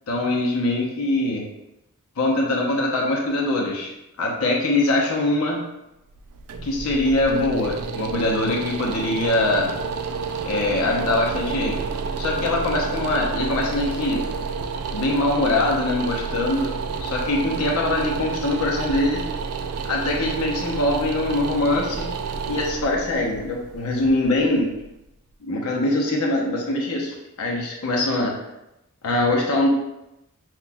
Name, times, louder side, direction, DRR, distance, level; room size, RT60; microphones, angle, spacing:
voice 1, 0.1-1.5 2.2-3.9 4.2-5.6 6.6-9.7 10.4-11.8 12.2-14.3 14.9-16.7 17.0-19.3 19.9-22.1 22.5-24.7 25.4-28.3 29.0-29.7, left 2 dB, 75° left, -1 dB, 0.8 m, -23 dB
sound 1, 6.1-25.1, right 5 dB, 85° right, 0.3 m, -30 dB
5.7 x 2.4 x 2.3 m, 0.90 s
head